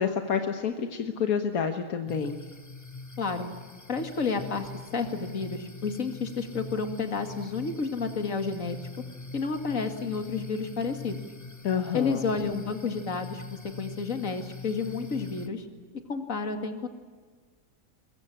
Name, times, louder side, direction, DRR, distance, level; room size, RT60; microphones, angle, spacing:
voice 1, 0.0-2.4 11.6-12.2, left 7 dB, 85° left, 6 dB, 1.7 m, -28 dB
sound 1, 2.1-15.5, left 3 dB, 15° left, 0.9 m, -43 dB
voice 2, 3.2-3.5 3.9-8.8 9.3-11.2 11.9-15.7 16.1-16.9, left 4 dB, 70° left, 6 dB, 2.6 m, -31 dB
23.0 x 22.0 x 8.8 m, 1.5 s
omnidirectional pair, 1.5 m